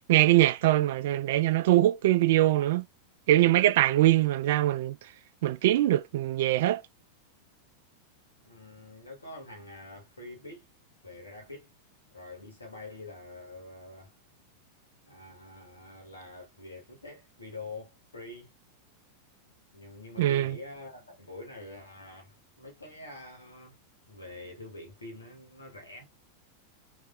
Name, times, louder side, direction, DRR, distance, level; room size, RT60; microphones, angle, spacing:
voice 1, 0.1-2.9 3.3-5.0 5.4-6.8 20.2-20.6, right 14 dB, 55° right, 0.3 m, -23 dB
voice 2, 8.4-10.7 11.0-11.7 12.1-14.1 15.0-18.5 19.7-23.8 24.1-26.0, left 2 dB, 75° left, 1.5 m, -46 dB
3.6 x 3.0 x 2.3 m
figure-of-eight pair, 90°, 0 cm